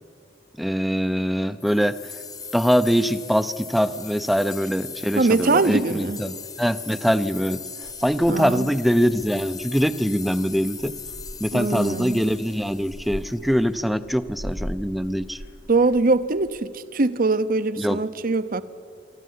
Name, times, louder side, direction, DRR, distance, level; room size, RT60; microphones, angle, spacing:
voice 1, 0.6-2.0 2.5-7.6 8.0-10.9 11.4-15.4 17.8-18.0, equal, ahead, 13 dB, 0.6 m, -23 dB
sound 1, 1.6-13.6, left 6 dB, 20° left, 0.9 m, -39 dB
voice 2, 5.2-6.2 8.3-8.7 11.5-12.3 15.7-18.6, right 3 dB, 50° right, 14 dB, 0.7 m, -22 dB
Purr / Meow, 7.8-16.6, equal, 85° left, 2.3 m, -41 dB
24.5 x 13.5 x 9.5 m, 2.3 s
head